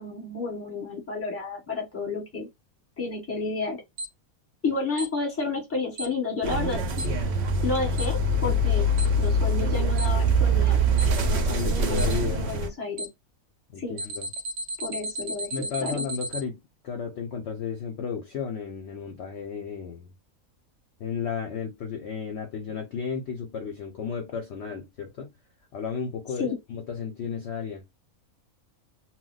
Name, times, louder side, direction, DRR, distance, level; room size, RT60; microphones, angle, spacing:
voice 1, 0.0-2.5 3.0-3.8 4.6-6.8 7.6-8.8 9.2-10.8 11.2-13.1 13.8-14.0 14.8-16.0 26.4-26.6, left 3 dB, 10° left, 0.9 m, -31 dB
Alarm, 4.0-4.1 5.0-5.1 6.0-6.1 7.0-7.1 8.0-8.1 9.0-9.1 10.0-10.1 11.0-11.1 12.0-12.1 13.0-13.1 14.0-16.4, right 1 dB, 90° right, 1.1 m, -32 dB
sound 1, 6.4-12.7, right 1 dB, 60° right, 0.7 m, -24 dB
voice 2, 11.4-12.5 13.7-14.3 15.5-16.6 16.8-20.1 21.0-25.3 25.7-27.8, left 6 dB, 65° left, 0.7 m, -33 dB
2.3 x 2.1 x 3.7 m
omnidirectional pair, 1.5 m